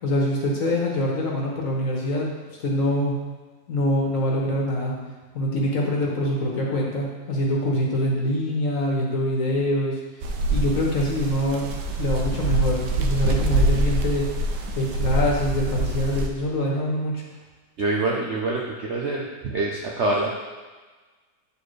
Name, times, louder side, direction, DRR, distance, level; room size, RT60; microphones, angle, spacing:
voice 1, 0.0-2.3 2.6-3.2 3.7-4.9 5.3-10.0 10.5-11.6 12.0-14.2 14.7-17.2, equal, 55° left, -3 dB, 1.5 m, -24 dB
sound 1, 10.2-16.3, right 1 dB, 85° right, 1.3 m, -25 dB
voice 2, 17.8-20.4, right 2 dB, 60° right, -2 dB, 0.7 m, -25 dB
9.2 x 4.4 x 3.2 m, 1.3 s
omnidirectional pair, 1.8 m